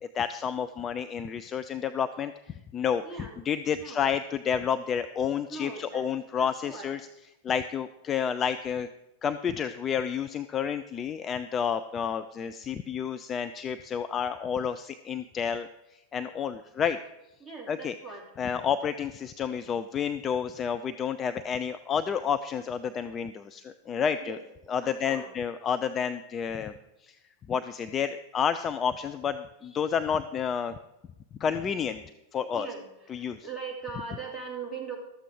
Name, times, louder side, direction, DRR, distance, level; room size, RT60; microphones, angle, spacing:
voice 1, 0.0-7.1 7.4-8.9 9.2-17.0 17.7-17.9 18.4-24.4 24.7-26.7 27.0-27.2 27.5-30.7 31.4-32.0 32.3-32.7 33.1-33.4, left 7 dB, 25° left, 10 dB, 0.4 m, -30 dB
voice 2, 3.0-3.3 3.7-4.0 5.5-6.0 6.4-6.9 17.4-18.2 24.2-24.4 24.8-25.3 32.5-32.8 33.1-35.0, right 5 dB, 5° right, -4 dB, 2.8 m, -40 dB
12.5 x 7.5 x 4.8 m, 0.92 s
figure-of-eight pair, 90°, 0 cm